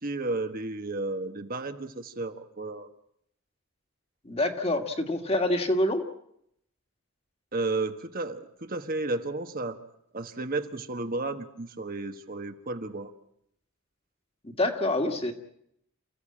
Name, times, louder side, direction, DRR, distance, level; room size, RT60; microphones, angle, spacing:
voice 1, 0.0-2.9 7.5-9.8 10.1-13.1, right 2 dB, 40° right, 7 dB, 1.4 m, -33 dB
voice 2, 4.3-6.0 14.4-15.3, left 1 dB, 25° left, 5 dB, 2.0 m, -26 dB
28.5 x 15.5 x 8.8 m, 0.74 s
head